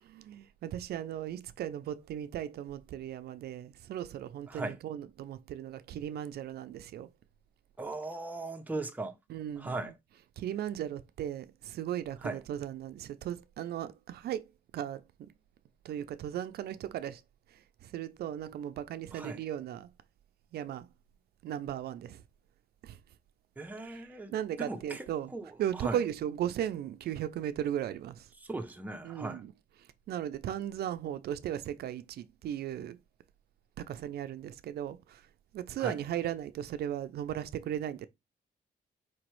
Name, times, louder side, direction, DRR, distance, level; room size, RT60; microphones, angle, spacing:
voice 1, 0.0-7.1 9.3-9.8 10.4-15.3 15.8-17.2 17.5-19.9 20.5-20.9 21.4-22.2 22.8-23.0 23.9-24.0 24.3-25.3 25.6-28.3 29.0-29.5 30.1-33.0 33.8-35.3 35.5-38.1, right 11 dB, 80° right, 0.4 m, -37 dB
voice 2, 4.5-4.8 7.8-9.2 9.6-9.9 12.2-12.4 19.1-19.4 23.6-24.3 24.6-26.0 28.4-29.4 35.8-36.0, right 2 dB, 10° right, 0.6 m, -38 dB
4.4 x 3.0 x 3.0 m
cardioid pair, 130°, 16 cm